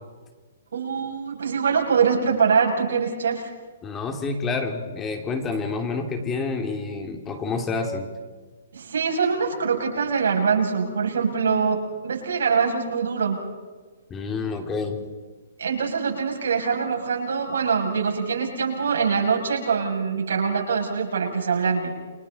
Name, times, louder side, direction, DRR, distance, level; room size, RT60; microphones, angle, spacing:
voice 1, 0.7-3.5 8.7-13.4 15.6-21.9, right 6 dB, 80° right, 0 dB, 7.5 m, -23 dB
voice 2, 3.8-8.1 14.1-15.0, left 4 dB, 15° left, 4 dB, 2.7 m, -28 dB
29.5 x 26.5 x 4.2 m, 1.4 s
hypercardioid pair, 155°, 0 cm